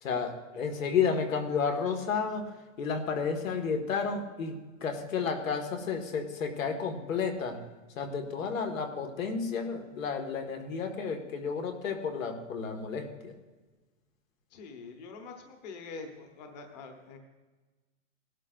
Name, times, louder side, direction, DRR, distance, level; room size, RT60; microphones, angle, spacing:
voice 1, 0.0-2.5 2.8-7.6 8.0-13.4, left 5 dB, 85° left, 5 dB, 2.0 m, -32 dB
voice 2, 14.5-17.2, left 4 dB, 35° left, 4 dB, 1.1 m, -45 dB
18.5 x 12.5 x 2.6 m, 1.2 s
supercardioid pair, 175°, 39 cm